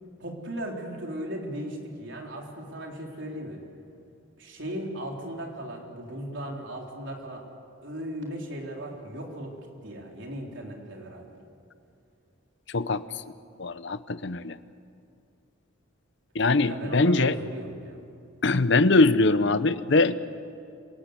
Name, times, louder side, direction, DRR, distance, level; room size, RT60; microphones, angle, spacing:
voice 1, 0.2-3.6 4.4-7.4 7.8-9.5 9.8-11.4 16.6-18.0, right 1 dB, 65° right, 0 dB, 4.0 m, -37 dB
voice 2, 12.7-13.0 13.6-14.5 16.3-17.4 18.4-20.2, left 3 dB, 60° left, 14 dB, 0.8 m, -22 dB
27.0 x 18.5 x 8.2 m, 2.5 s
head